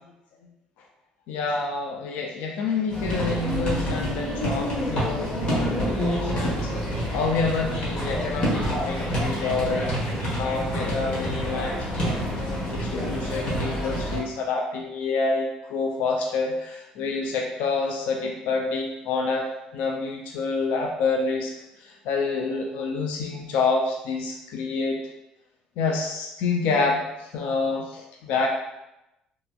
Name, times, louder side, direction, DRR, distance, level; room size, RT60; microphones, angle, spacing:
voice 1, 1.3-6.8 7.1-19.5 19.7-21.5 21.8-25.0 25.8-28.5, left 4 dB, 75° left, 1 dB, 0.3 m, -28 dB
sound 1, 2.9-14.2, equal, 45° left, 1.1 m, -27 dB
2.8 x 2.6 x 2.2 m, 0.93 s
supercardioid pair, 95°, 3 cm